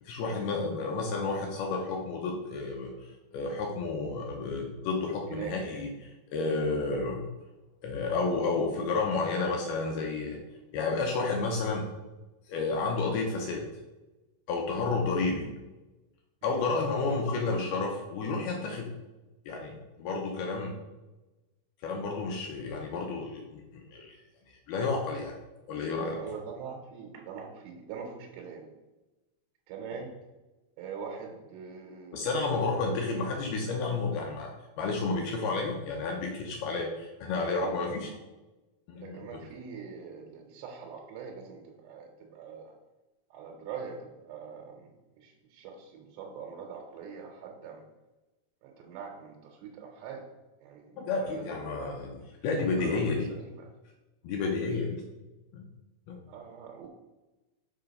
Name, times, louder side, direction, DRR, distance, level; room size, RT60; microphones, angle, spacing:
voice 1, 0.0-7.3 7.8-10.4 10.7-11.9 12.5-13.7 14.5-15.5 16.4-18.9 19.5-20.8 21.8-24.2 24.5-25.4 25.7-26.2 32.1-34.5 34.8-38.1 38.9-39.3 51.0-52.1 52.4-53.3 54.2-55.0 55.5-55.7 56.1-56.2, left 3 dB, 75° left, 1 dB, 2.5 m, -31 dB
voice 2, 26.2-28.7 29.7-30.1 30.8-32.3 37.6-38.2 39.0-42.7 43.3-47.8 48.6-50.2 50.6-52.0 52.8-53.0 53.3-53.7 56.3-56.9, right 6 dB, 80° right, 1 dB, 3.1 m, -43 dB
6.5 x 4.9 x 5.2 m, 1.1 s
omnidirectional pair, 5.0 m